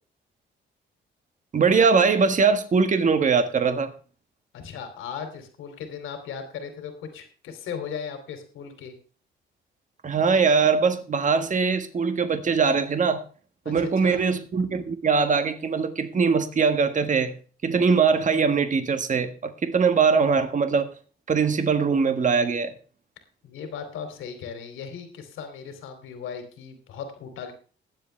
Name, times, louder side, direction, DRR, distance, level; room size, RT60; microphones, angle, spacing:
voice 1, 1.5-3.9 10.0-13.2 13.6-17.3 17.6-20.9 21.3-22.7, right 5 dB, 40° right, 1.5 m, -21 dB
voice 2, 4.5-8.9 13.6-14.2 23.4-27.5, left 7 dB, 85° left, 2.9 m, -37 dB
20.5 x 7.7 x 3.3 m
cardioid pair, 90°, 20 cm